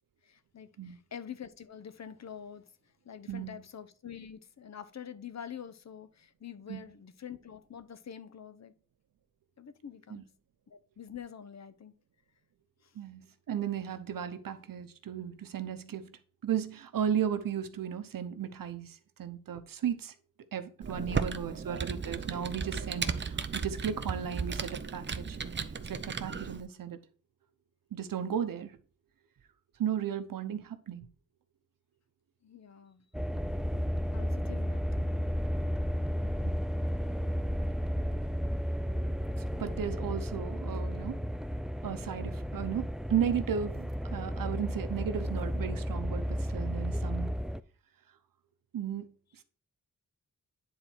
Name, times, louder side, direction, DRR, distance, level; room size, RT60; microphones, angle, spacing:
voice 1, 0.2-2.7 3.0-8.7 9.6-10.2 10.7-11.9 12.8-13.0 21.0-21.5 32.4-33.0 34.1-35.1, left 8 dB, 55° left, 0.8 m, -46 dB
voice 2, 12.9-20.1 20.5-27.0 27.9-28.8 29.8-31.1 33.7-33.8 36.4-36.7 39.4-41.3 41.8-47.3 48.7-49.1, right 8 dB, 80° right, 0.9 m, -35 dB
Computer keyboard, 20.8-26.6, right 5 dB, 35° right, 0.7 m, -35 dB
sound 1, 33.1-47.6, equal, ahead, 0.4 m, -33 dB
9.7 x 4.0 x 4.5 m
wide cardioid pair, 105°, 33 cm